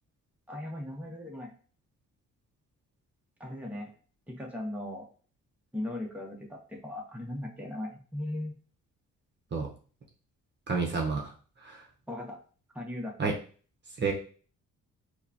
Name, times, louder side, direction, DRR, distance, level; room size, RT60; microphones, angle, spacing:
voice 1, 0.5-1.5 3.4-3.9 4.3-5.1 5.7-8.5 12.1-12.4 12.7-13.1, left 1 dB, 5° right, 0 dB, 1.0 m, -38 dB
voice 2, 10.7-11.3 13.2-13.3 14.0-14.1, right 4 dB, 35° right, 1 dB, 0.9 m, -28 dB
4.7 x 2.3 x 2.8 m, 0.40 s
cardioid pair, 90°, 30 cm